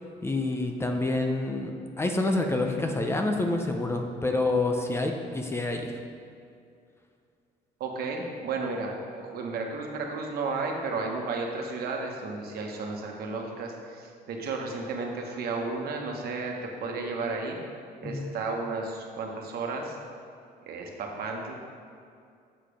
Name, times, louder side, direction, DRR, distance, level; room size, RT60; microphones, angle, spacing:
voice 1, 0.2-6.0 18.0-18.3, left 2 dB, 15° left, 3 dB, 0.6 m, -28 dB
voice 2, 7.8-17.6 18.0-20.0 20.7-21.5, right 3 dB, 65° right, 1 dB, 1.2 m, -33 dB
7.7 x 4.9 x 5.0 m, 2.3 s
cardioid pair, 110°, 17 cm